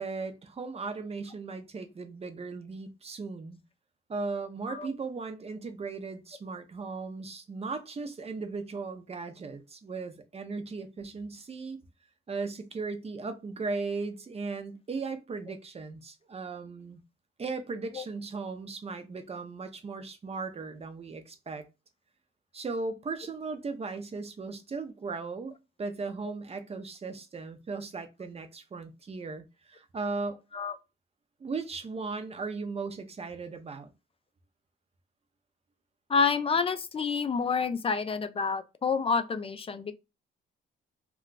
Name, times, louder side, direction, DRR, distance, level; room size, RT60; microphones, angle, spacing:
voice 1, 0.0-3.6 4.1-11.8 12.3-17.0 17.4-21.6 22.5-25.5 25.8-30.4 31.4-33.9, right 4 dB, 30° right, 0.7 m, -37 dB
voice 2, 36.1-39.9, left 5 dB, 30° left, 0.4 m, -28 dB
2.3 x 2.3 x 3.8 m
cardioid pair, 90°, 20 cm